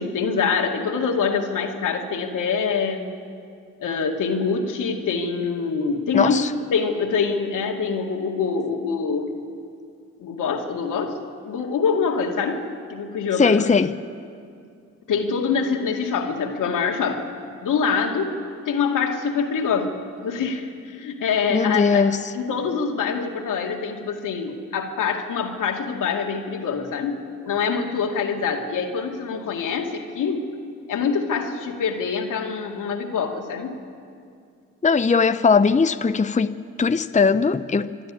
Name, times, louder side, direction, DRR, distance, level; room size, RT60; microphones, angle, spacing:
voice 1, 0.0-3.1 3.8-6.4 6.7-9.3 10.2-11.2 11.4-12.6 12.9-13.7 15.1-17.3 17.6-18.3 18.7-22.1 22.3-30.5 30.9-33.8, left 5 dB, 80° left, 2.3 m, -25 dB
voice 2, 6.1-6.5 13.4-14.0 21.5-22.3 34.8-38.1, left 5 dB, 25° left, 0.7 m, -19 dB
26.0 x 12.0 x 9.8 m
supercardioid pair, 45°, 31 cm